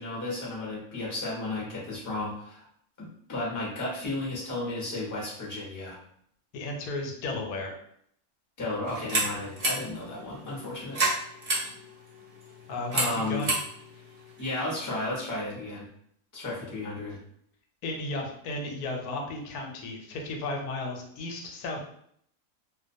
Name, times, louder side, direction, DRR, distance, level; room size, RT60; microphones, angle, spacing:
voice 1, 0.0-2.6 3.0-6.0 8.6-11.0 12.9-13.5 14.4-15.9 16.3-17.2, left 2 dB, 20° left, -5 dB, 0.6 m, -33 dB
voice 2, 6.5-7.7 12.7-13.6 17.8-21.8, left 2 dB, 90° left, 1 dB, 1.1 m, -34 dB
sound 1, 8.8-15.1, right 2 dB, 45° right, 0.5 m, -32 dB
2.4 x 2.2 x 2.5 m, 0.68 s
omnidirectional pair, 1.5 m